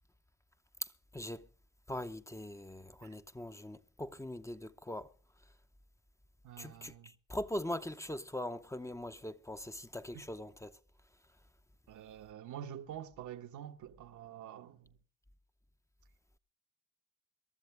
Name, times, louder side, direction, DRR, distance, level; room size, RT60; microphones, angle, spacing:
voice 1, 0.8-1.5 1.9-5.1 6.6-10.8, left 1 dB, 10° left, 0.7 m, -41 dB
voice 2, 6.4-7.1 10.1-10.3 11.9-14.9, right 10 dB, 80° right, 1.2 m, -47 dB
23.0 x 13.0 x 3.3 m
cardioid pair, 90°, 30 cm